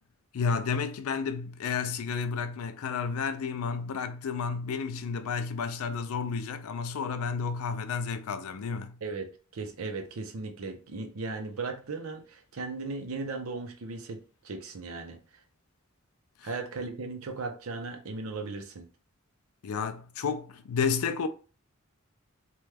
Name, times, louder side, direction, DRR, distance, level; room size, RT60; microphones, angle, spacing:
voice 1, 0.3-9.0 16.4-16.5 19.6-21.3, left 5 dB, 85° left, 0.4 m, -31 dB
voice 2, 9.0-15.2 16.4-18.9, right 3 dB, 80° right, 0.6 m, -37 dB
3.1 x 2.3 x 3.3 m
head